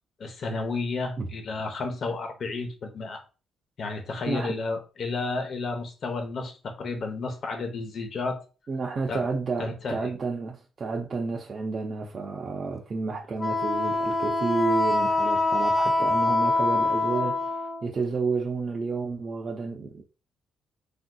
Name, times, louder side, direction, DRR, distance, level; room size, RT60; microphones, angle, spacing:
voice 1, 0.2-3.2 3.8-8.4 9.1-9.3 9.6-10.1, left 3 dB, 55° left, 0.7 m, -32 dB
voice 2, 8.7-20.0, right 4 dB, 40° right, 0.5 m, -30 dB
Wind instrument woodwind instrument, 13.4-17.8, left 2 dB, 20° left, 0.6 m, -24 dB
3.3 x 2.6 x 2.3 m
cardioid pair, 90°, 0 cm